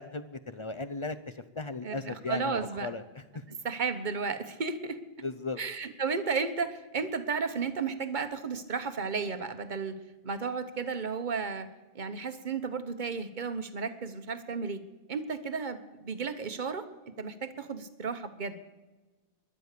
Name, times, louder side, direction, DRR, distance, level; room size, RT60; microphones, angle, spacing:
voice 1, 0.0-3.4 5.2-5.6, left 3 dB, 35° left, 11 dB, 0.5 m, -37 dB
voice 2, 1.8-2.9 3.6-5.0 5.6-9.9 10.2-11.7 11.9-14.8 15.1-16.9 17.2-18.6, right 5 dB, 45° right, 10 dB, 1.1 m, -33 dB
19.0 x 11.0 x 6.7 m, 1.2 s
omnidirectional pair, 1.1 m